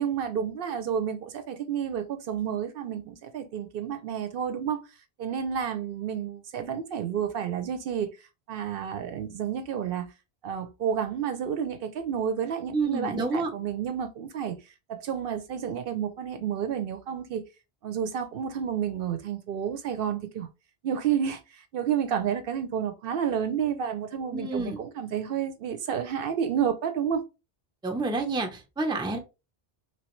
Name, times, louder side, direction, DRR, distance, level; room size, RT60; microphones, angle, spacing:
voice 1, 0.0-4.8 5.2-8.1 8.5-10.1 10.4-14.6 14.9-17.4 17.8-20.5 20.8-27.2, right 8 dB, 70° right, 0.7 m, -30 dB
voice 2, 12.7-13.5 24.3-24.8 27.8-29.2, right 3 dB, 5° right, 0.5 m, -29 dB
3.1 x 3.1 x 3.0 m
omnidirectional pair, 1.0 m